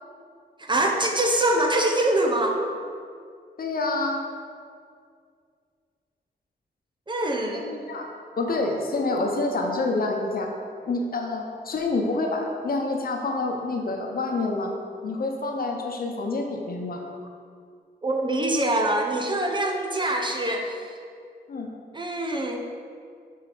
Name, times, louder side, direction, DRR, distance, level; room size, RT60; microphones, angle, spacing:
voice 1, 0.6-2.6 7.1-7.7 18.0-20.9 21.9-22.6, right 1 dB, 30° right, 2 dB, 0.8 m, -24 dB
voice 2, 3.6-4.2 7.5-8.1 8.4-10.5 10.9-14.7 15.0-17.0 21.5-21.7, left 2 dB, 60° left, 2 dB, 0.9 m, -27 dB
5.7 x 4.7 x 5.1 m, 2.2 s
wide cardioid pair, 85°, 17 cm